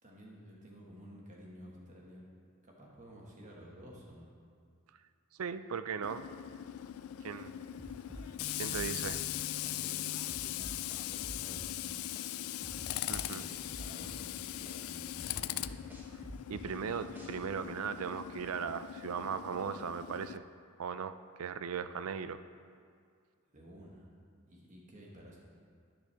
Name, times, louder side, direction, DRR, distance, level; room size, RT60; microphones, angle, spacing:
voice 1, 0.0-2.2 2.6-4.3 8.6-9.2 9.5-10.2 10.5-12.1 13.3-15.9 23.5-24.1 24.4-25.4, equal, 35° right, -3 dB, 1.6 m, -53 dB
voice 2, 5.4-6.3 7.2-7.5 8.6-9.2 13.1-13.4 16.5-20.4 20.8-22.4, right 6 dB, 80° right, 12 dB, 0.4 m, -38 dB
Tools, 6.0-20.4, left 13 dB, 75° left, 0.3 m, -40 dB
sound 1, 7.8-9.8 10.3-12.3 12.6-14.8 15.3-17.5, equal, 10° right, 1.1 m, -47 dB
10.0 x 9.9 x 3.5 m, 2.2 s
head